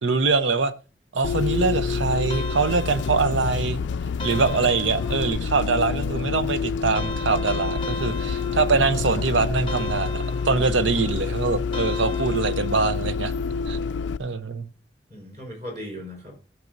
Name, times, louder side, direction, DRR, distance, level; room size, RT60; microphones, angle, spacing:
voice 1, 0.0-0.7 1.1-3.8 4.2-13.3 13.7-13.8 14.2-14.7, right 4 dB, 90° right, 0.8 m, -23 dB
Bus, 1.2-14.2, left 5 dB, 75° left, 0.3 m, -27 dB
sound 1, 2.3-3.6 4.2-5.5 6.9-9.1 9.7-11.0 11.7-13.0, left 1 dB, 30° left, 0.7 m, -37 dB
voice 2, 15.1-16.4, equal, 40° right, 4.8 m, -39 dB
16.5 x 7.5 x 2.6 m
head